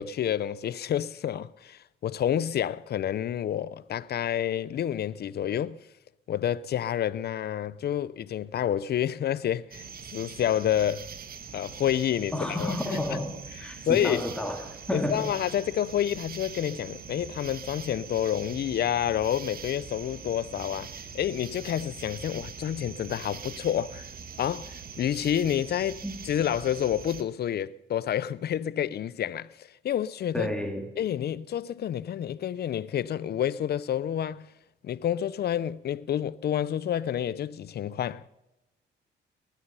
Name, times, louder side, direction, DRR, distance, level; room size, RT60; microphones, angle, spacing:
voice 1, 0.0-5.8 6.3-11.1 11.5-13.0 13.9-14.2 14.9-20.9 21.1-24.1 24.4-26.0 26.2-30.5 31.0-34.5 34.8-38.2, left 10 dB, 55° left, 0.6 m, -29 dB
sound 1, 9.7-27.2, right 6 dB, 50° right, 1.3 m, -43 dB
voice 2, 12.3-15.4 26.0-26.1 30.3-30.9, left 1 dB, 5° left, 2.0 m, -31 dB
19.0 x 11.5 x 5.6 m
cardioid pair, 90°, 20 cm